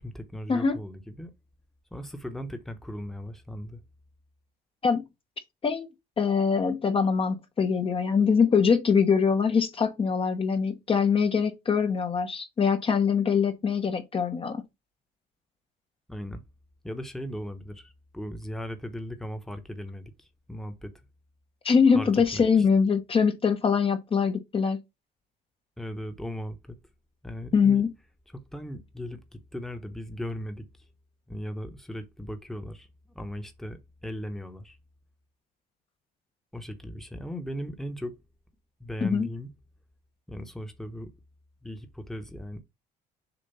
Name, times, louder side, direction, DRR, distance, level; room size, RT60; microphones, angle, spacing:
voice 1, 0.0-1.3 1.9-3.8 16.1-16.4 16.8-20.9 21.9-22.7 25.8-26.8 27.2-27.8 28.3-30.9 31.3-32.9 33.1-34.8 36.5-38.2 38.8-39.5 40.3-41.1 41.6-42.6, equal, ahead, 1.1 m, -38 dB
voice 2, 6.2-14.6 21.6-24.8 27.5-27.9 39.0-39.3, left 6 dB, 35° left, 1.0 m, -23 dB
7.0 x 2.5 x 5.5 m
cardioid pair, 110°, 17 cm